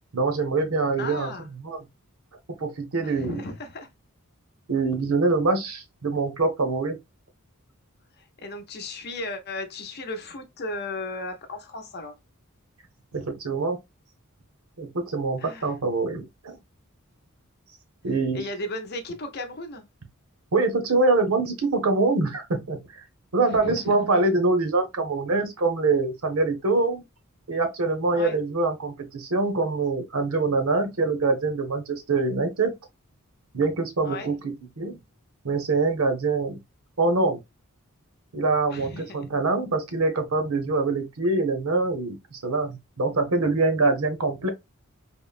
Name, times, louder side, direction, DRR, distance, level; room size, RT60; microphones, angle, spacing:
voice 1, 0.1-1.3 1.6-1.8 2.6-3.4 4.7-7.0 13.1-13.8 14.8-16.6 18.0-18.4 20.5-22.8 23.3-27.0 27.5-32.7 33.5-35.0 35.4-36.6 37.0-37.4 38.3-44.5, right 3 dB, 75° right, 0.7 m, -24 dB
voice 2, 1.0-1.5 3.0-3.9 8.2-12.2 15.4-15.7 18.3-19.9 23.4-23.9 28.1-28.4 34.0-34.3 38.7-39.2, left 2 dB, 50° left, 0.6 m, -35 dB
3.6 x 2.0 x 2.3 m
head